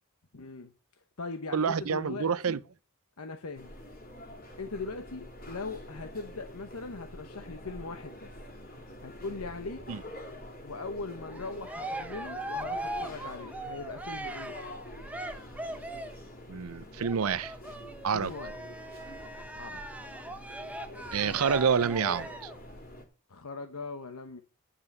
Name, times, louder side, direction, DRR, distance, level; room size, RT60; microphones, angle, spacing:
voice 1, 0.3-0.7 1.2-2.6 3.2-3.7 4.6-8.3 9.0-9.9 10.6-14.6 18.1-18.6 19.5-19.8 21.2-21.4 23.3-24.4, left 3 dB, 85° left, 1.0 m, -40 dB
voice 2, 1.5-2.6 9.9-10.0 16.5-17.5 18.0-18.3 21.1-22.5, right 6 dB, 75° right, 0.6 m, -28 dB
sound 1, 3.5-23.0, left 1 dB, 45° left, 3.1 m, -46 dB
Cheering, 11.3-16.3 17.0-22.6, right 1 dB, 5° right, 0.9 m, -40 dB
10.0 x 5.6 x 7.8 m
head